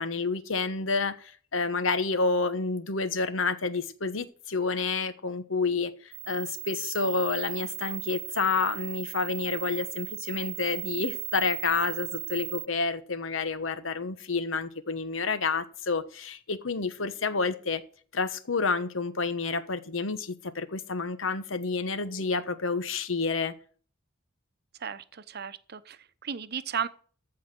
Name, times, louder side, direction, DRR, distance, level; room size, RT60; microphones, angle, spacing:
voice 1, 0.0-5.9 6.3-17.8 18.1-23.5, left 4 dB, 70° left, 1.1 m, -29 dB
sound 1, 6.1-12.7, right 22 dB, 75° right, 0.5 m, -37 dB
voice 2, 24.8-26.9, right 7 dB, 55° right, 0.8 m, -35 dB
14.5 x 4.9 x 7.7 m
head